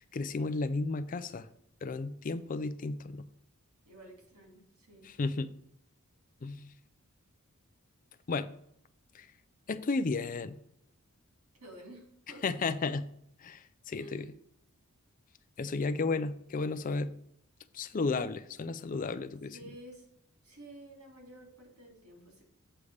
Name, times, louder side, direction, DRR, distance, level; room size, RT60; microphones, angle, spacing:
voice 1, 0.0-1.5 1.8-3.3 5.0-5.5 6.4-6.7 8.3-8.5 9.1-9.3 9.7-10.6 12.4-13.1 13.4-14.3 15.6-17.1 17.7-19.6, left 3 dB, 35° left, 12 dB, 0.4 m, -33 dB
voice 2, 3.8-5.1 11.6-12.4 14.0-14.3 19.5-20.0 20.4-22.4, right 1 dB, 85° right, 0 dB, 3.2 m, -51 dB
8.5 x 3.4 x 6.4 m, 0.74 s
head